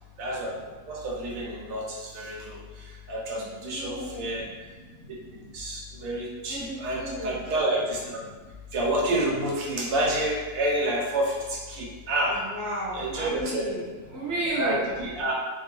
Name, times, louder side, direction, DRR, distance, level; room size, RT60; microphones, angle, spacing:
voice 1, 0.2-0.6 0.9-2.6 3.1-4.4 5.1-5.2 5.5-8.3 8.7-12.4 12.9-13.6 14.6-15.3, right 1 dB, 80° right, -3 dB, 1.0 m, -29 dB
voice 2, 3.3-4.4 6.5-7.4 12.3-14.8, right 1 dB, 25° right, -7 dB, 0.4 m, -33 dB
2.3 x 2.3 x 2.8 m, 1.3 s
omnidirectional pair, 1.4 m